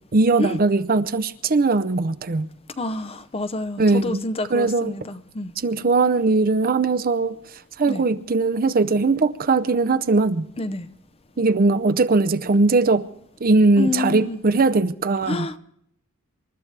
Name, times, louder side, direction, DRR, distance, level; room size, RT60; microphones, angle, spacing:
voice 1, 0.1-2.5 3.8-4.2 4.5-4.9 5.6-7.4 7.8-10.4 11.4-13.1 13.4-15.5, right 3 dB, 40° right, 0.6 m, -20 dB
voice 2, 2.8-5.5 7.9-8.0 10.6-10.9 13.8-14.4 15.3-15.6, left 2 dB, 25° left, 0.6 m, -28 dB
27.5 x 13.0 x 3.3 m
head